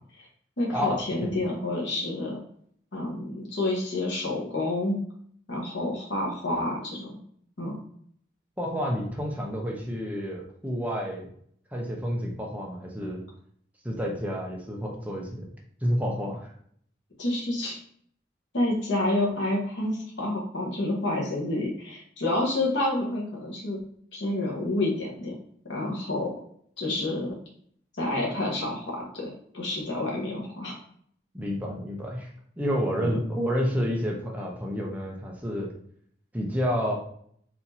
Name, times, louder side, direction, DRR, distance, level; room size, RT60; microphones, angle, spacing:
voice 1, 0.6-2.4 2.9-5.0 5.5-7.1 7.6-7.8 17.2-17.8 18.5-23.8 24.1-25.3 25.7-26.3 26.8-27.3 28.0-30.7 33.0-33.2, left 1 dB, 85° left, -3 dB, 1.2 m, -29 dB
voice 2, 8.6-11.3 11.7-13.2 13.8-15.5 15.8-16.5 31.3-32.3 32.6-35.7 36.3-36.9, equal, 10° right, -1 dB, 0.8 m, -29 dB
4.3 x 2.8 x 4.2 m, 0.63 s
head